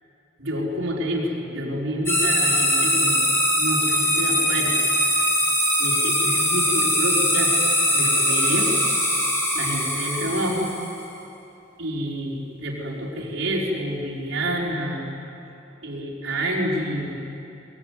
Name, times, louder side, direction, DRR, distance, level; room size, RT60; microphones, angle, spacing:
voice 1, 0.4-3.3 3.6-4.8 5.8-7.6 7.9-8.7 9.5-10.7 11.8-15.1 15.8-17.2, equal, 70° right, -3 dB, 4.8 m, -28 dB
sound 1, 2.1-11.0, equal, 15° left, 3.9 m, -21 dB
22.5 x 22.5 x 9.6 m, 2.8 s
head